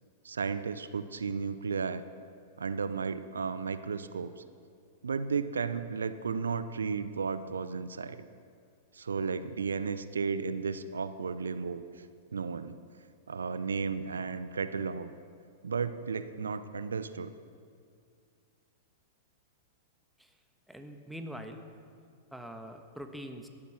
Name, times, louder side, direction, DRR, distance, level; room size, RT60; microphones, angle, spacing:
voice 1, 0.2-2.0 2.6-4.4 5.0-8.3 8.9-11.8 12.3-12.7 13.3-15.1 15.6-17.3, right 5 dB, 80° right, 13 dB, 0.6 m, -34 dB
voice 2, 20.7-21.6 22.3-23.5, equal, ahead, 5 dB, 1.4 m, -43 dB
17.0 x 12.5 x 5.9 m, 2.2 s
hypercardioid pair, 105°, 0 cm